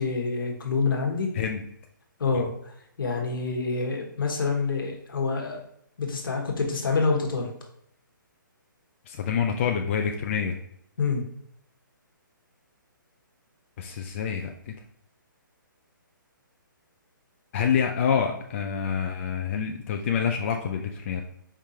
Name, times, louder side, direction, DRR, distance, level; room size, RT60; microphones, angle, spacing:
voice 1, 0.0-1.3 2.2-5.6 6.0-7.5 11.0-11.2, left 4 dB, 80° left, 2 dB, 1.3 m, -27 dB
voice 2, 9.1-10.6 13.8-14.7 17.5-21.2, left 7 dB, 35° left, 3 dB, 0.4 m, -27 dB
4.7 x 3.6 x 2.8 m, 0.71 s
hypercardioid pair, 150°, 11 cm